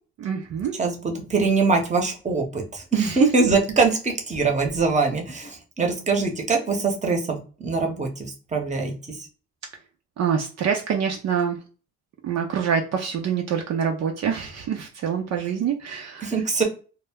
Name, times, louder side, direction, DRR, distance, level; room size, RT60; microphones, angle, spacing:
voice 1, 0.2-0.7 2.9-3.2 10.2-11.6 12.2-16.3, right 7 dB, 60° right, 2 dB, 0.5 m, -26 dB
voice 2, 0.8-9.2 16.2-16.6, right 4 dB, 25° right, 3 dB, 0.8 m, -23 dB
2.1 x 2.1 x 3.4 m, 0.36 s
cardioid pair, 90°, 30 cm